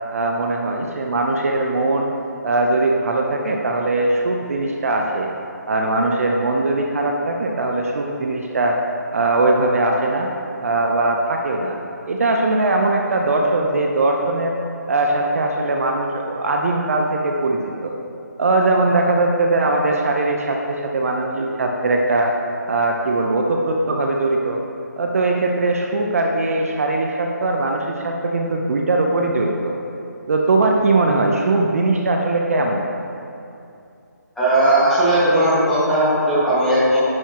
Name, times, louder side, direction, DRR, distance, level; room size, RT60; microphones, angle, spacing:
voice 1, 0.1-2.2 2.4-5.3 5.7-8.8 9.1-10.3 10.6-11.8 12.1-14.6 14.9-17.9 18.4-22.3 22.7-24.6 25.0-29.7 30.3-32.9, right 2 dB, 50° right, 1 dB, 0.7 m, -20 dB
voice 2, 34.4-37.0, right 1 dB, ahead, -12 dB, 1.8 m, -17 dB
10.5 x 6.7 x 3.0 m, 2.6 s
figure-of-eight pair, 155°, 10 cm